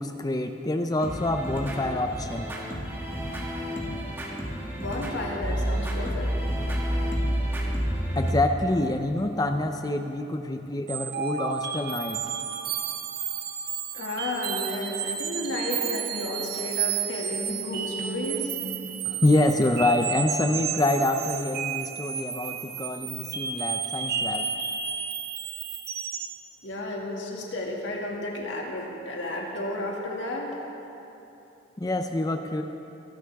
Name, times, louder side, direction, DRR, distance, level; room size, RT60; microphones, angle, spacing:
voice 1, 0.0-2.5 8.2-12.2 19.0-24.5 31.8-32.6, left 1 dB, 20° left, 6 dB, 0.5 m, -26 dB
sound 1, 1.0-8.3, equal, 10° right, 1.6 m, -30 dB
voice 2, 4.8-6.3 13.9-18.6 26.6-30.6, left 1 dB, 70° left, -2 dB, 2.2 m, -32 dB
sound 2, 10.9-26.4, right 8 dB, 50° right, 0.9 m, -32 dB
23.5 x 12.0 x 3.5 m, 2.9 s
head